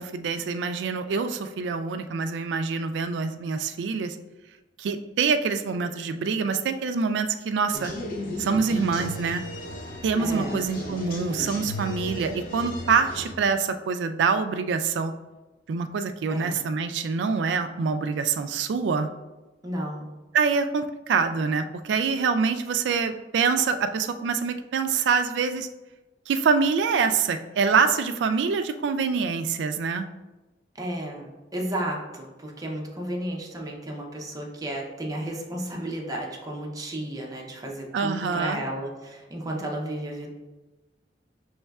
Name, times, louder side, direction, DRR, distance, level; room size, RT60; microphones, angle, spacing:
voice 1, 0.0-4.2 4.8-8.0 8.4-9.4 10.0-15.1 15.7-19.1 20.3-25.7 26.3-30.1 37.9-38.6, right 5 dB, 75° right, 9 dB, 0.3 m, -25 dB
sound 1, 7.7-13.3, left 1 dB, 50° left, 0.6 m, -35 dB
voice 2, 10.2-10.6 16.3-16.6 19.6-20.1 30.7-40.3, right 1 dB, 20° right, -1 dB, 0.6 m, -33 dB
5.3 x 3.1 x 2.3 m, 1.1 s
head